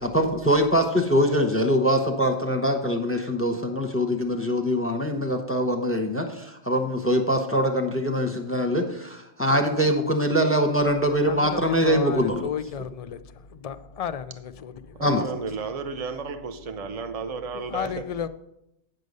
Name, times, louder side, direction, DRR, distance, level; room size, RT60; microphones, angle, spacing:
voice 1, 0.0-12.5 15.0-15.3, equal, 15° left, 0.9 m, -23 dB
voice 2, 11.2-15.0 17.7-18.3, left 8 dB, 55° left, 0.4 m, -33 dB
voice 3, 14.9-18.0, right 4 dB, 40° right, 0.7 m, -33 dB
9.3 x 6.5 x 5.4 m
omnidirectional pair, 1.2 m